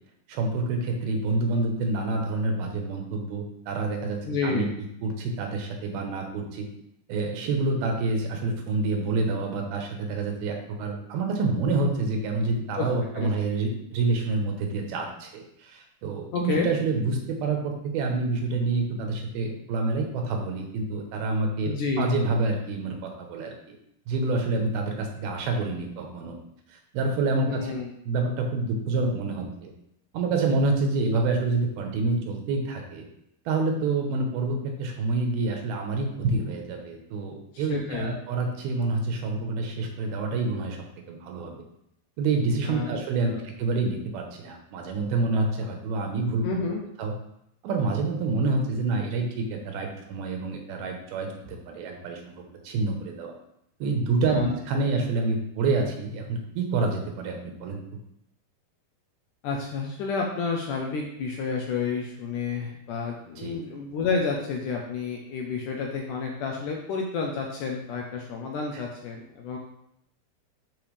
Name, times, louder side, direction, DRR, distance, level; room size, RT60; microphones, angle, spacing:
voice 1, 0.3-4.7 5.0-6.7 7.1-23.8 24.1-26.4 26.7-27.7 28.0-29.7 30.1-33.0 33.5-40.8 41.1-41.6 42.2-46.5 47.0-47.1 47.6-53.3 53.8-57.8 63.4-63.6 68.7-68.8, right 3 dB, 80° right, 2 dB, 2.9 m, -27 dB
voice 2, 4.2-4.7 12.8-12.9 13.2-13.3 16.3-16.7 21.6-22.1 27.5-27.9 37.5-38.2 42.7-42.9 43.2-43.5 46.4-46.8 54.3-54.5 59.4-69.6, left 5 dB, 75° left, 0 dB, 2.0 m, -30 dB
10.5 x 4.6 x 3.4 m, 0.76 s
omnidirectional pair, 4.4 m